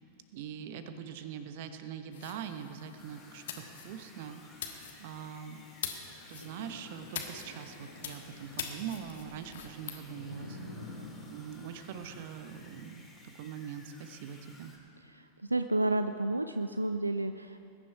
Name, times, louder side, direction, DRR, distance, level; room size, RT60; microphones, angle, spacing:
voice 1, 0.3-5.6 6.3-10.6 10.9-11.0 11.3-13.0 13.4-14.7, right 8 dB, 50° right, 9 dB, 1.0 m, -43 dB
sound 1, 2.1-10.0, left 8 dB, 60° left, 1.4 m, -44 dB
sound 2, 3.0-14.8, left 2 dB, 10° left, 3.3 m, -57 dB
sound 3, 6.0-14.2 14.8-14.9, left 1 dB, 80° left, 2.5 m, -50 dB
voice 2, 15.1-17.6, right 2 dB, 85° right, 9 dB, 0.4 m, -31 dB
21.0 x 10.5 x 4.8 m, 2.8 s
figure-of-eight pair, 90°, 0 cm